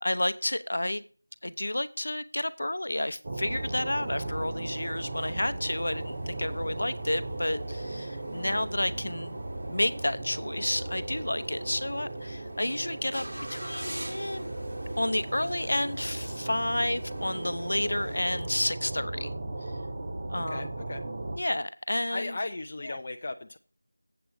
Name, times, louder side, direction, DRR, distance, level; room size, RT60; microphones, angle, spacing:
voice 1, 0.0-1.0 1.4-9.4 9.7-13.2 13.5-14.5 15.0-19.3 19.6-19.7 20.3-20.7 21.4-22.3 22.9-23.0, left 1 dB, 55° left, 13 dB, 0.7 m, -31 dB
sound 1, 3.2-21.4, right 2 dB, 20° right, 0.9 m, -37 dB
sound 2, 3.4-18.2, right 1 dB, 80° right, 3.0 m, -47 dB
voice 2, 20.4-21.0 22.1-23.6, left 2 dB, 20° left, 4 dB, 0.5 m, -36 dB
7.8 x 7.5 x 4.8 m, 0.39 s
figure-of-eight pair, 180°, 0 cm